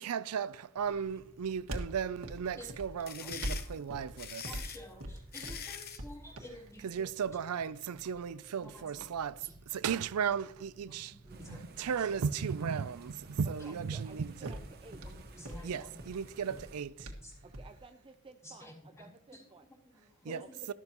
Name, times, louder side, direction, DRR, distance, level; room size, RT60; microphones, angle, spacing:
voice 1, 0.0-4.5 6.8-9.4 9.7-11.2 11.5-14.5 15.6-17.1 20.3-20.4 20.7-20.8, right 7 dB, 90° right, 0.4 m, -35 dB
sound 1, 0.8-17.8, right 1 dB, 70° right, 1.7 m, -47 dB
sound 2, 2.8-6.1, left 8 dB, 45° left, 0.9 m, -44 dB
voice 2, 3.2-3.9 4.4-6.9 7.6-7.7 8.6-9.1 9.4-9.8 10.9-11.7 12.0-12.1 13.6-13.7 15.0-15.9 17.2-17.3 18.4-19.4 19.8-20.7, left 1 dB, 15° left, 3.6 m, -51 dB
sound 3, 11.3-16.8, right 2 dB, 45° right, 1.2 m, -55 dB
voice 3, 13.4-15.0 17.4-19.7 20.2-20.7, right 3 dB, 25° right, 0.5 m, -54 dB
13.0 x 12.5 x 3.0 m
head